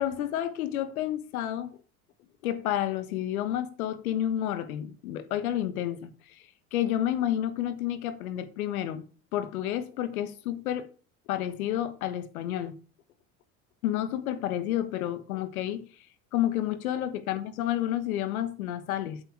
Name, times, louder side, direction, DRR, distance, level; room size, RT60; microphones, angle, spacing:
voice 1, 0.0-1.8 2.4-9.0 9.3-10.9 11.3-12.8 13.8-16.1 16.3-19.2, left 12 dB, 80° left, 1.4 m, -30 dB
8.4 x 7.9 x 3.5 m
hypercardioid pair, 80°, 43 cm